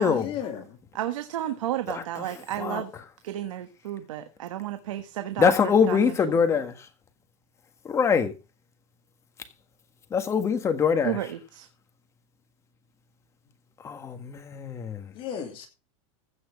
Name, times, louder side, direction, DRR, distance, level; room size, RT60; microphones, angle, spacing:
voice 1, 0.0-0.8 15.1-15.7, left 8 dB, 35° left, 2.6 m, -34 dB
voice 2, 0.9-2.9 3.2-5.5 5.9-6.4 11.0-11.7, right 12 dB, 90° right, 1.5 m, -32 dB
voice 3, 1.9-2.8 5.4-6.9 7.8-8.3 10.1-11.2 13.8-15.1, left 6 dB, 15° left, 1.6 m, -24 dB
15.5 x 6.2 x 6.1 m
supercardioid pair, 155°, 16 cm